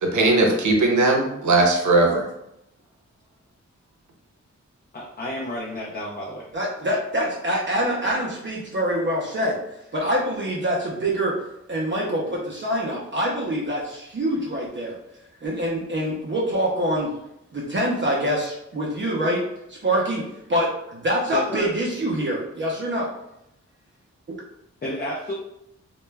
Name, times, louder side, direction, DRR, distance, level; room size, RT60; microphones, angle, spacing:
voice 1, 0.0-2.3, right 2 dB, 80° right, 1 dB, 0.6 m, -19 dB
voice 2, 4.9-6.5 21.3-21.7 24.8-25.3, left 1 dB, 35° left, -3 dB, 0.4 m, -31 dB
voice 3, 6.5-9.6 9.9-11.4 11.7-15.0 15.4-17.1 17.5-19.4 19.7-20.2 20.5-23.1, equal, 40° right, -4 dB, 0.5 m, -25 dB
2.2 x 2.1 x 3.2 m, 0.82 s
wide cardioid pair, 120°, 29 cm